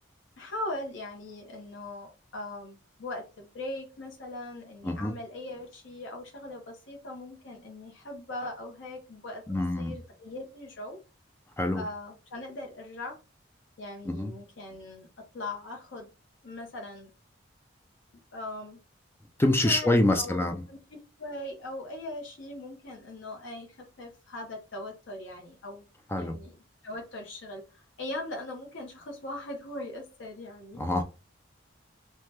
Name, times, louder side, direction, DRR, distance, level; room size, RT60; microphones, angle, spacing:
voice 1, 0.4-9.4 9.8-11.0 11.8-13.2 13.8-15.1 15.3-16.1 16.4-17.1 18.3-18.8 19.6-25.8 26.2-26.5 26.8-30.8, left 1 dB, 70° left, 0 dB, 0.8 m, -40 dB
voice 2, 9.5-9.9 11.6-11.8 14.1-14.3 19.4-20.6 26.1-26.4 30.8-31.0, left 1 dB, 10° left, 6 dB, 0.3 m, -25 dB
2.8 x 2.2 x 3.2 m, 0.30 s
head